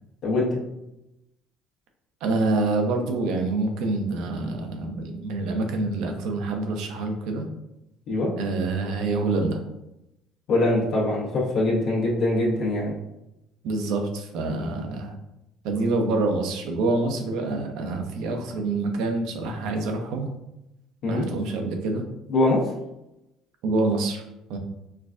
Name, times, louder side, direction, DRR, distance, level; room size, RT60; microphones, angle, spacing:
voice 1, 2.2-7.4 8.4-9.6 13.6-15.1 15.6-20.3 21.1-22.0 23.6-24.2 24.5-24.6, right 3 dB, 75° right, 4 dB, 0.6 m, -26 dB
voice 2, 10.5-12.9 21.0-21.3 22.3-22.6, left 2 dB, 65° left, -4 dB, 1.1 m, -23 dB
4.5 x 2.3 x 2.5 m, 0.89 s
supercardioid pair, 75°, 0 cm